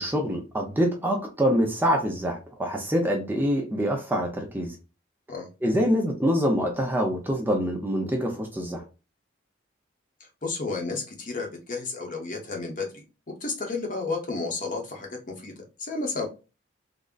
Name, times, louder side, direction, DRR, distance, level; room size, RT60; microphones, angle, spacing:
voice 1, 0.0-4.7 5.6-8.8, equal, 10° right, 0.5 m, -25 dB
voice 2, 10.4-13.0 13.4-15.5 15.8-16.3, left 3 dB, 45° left, 0.8 m, -32 dB
3.5 x 2.0 x 2.3 m
head